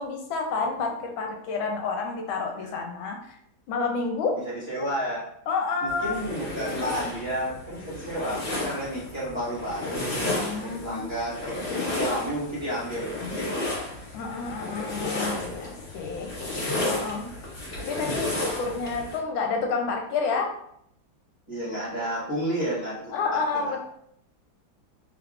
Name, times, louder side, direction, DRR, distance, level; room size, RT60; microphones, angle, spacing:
voice 1, 0.0-3.4 3.7-4.3 5.5-6.1 10.4-11.1 11.6-12.1 14.1-16.3 16.9-17.3 17.8-20.5 23.1-23.8, left 4 dB, 80° left, 2 dB, 1.4 m, -29 dB
voice 2, 4.4-5.2 5.8-10.2 10.5-13.7 14.0-14.1 21.5-23.8, equal, 15° right, -10 dB, 1.3 m, -31 dB
sound 1, 5.9-19.2, left 2 dB, 35° left, 1.8 m, -33 dB
3.6 x 3.1 x 2.4 m, 0.71 s
omnidirectional pair, 2.1 m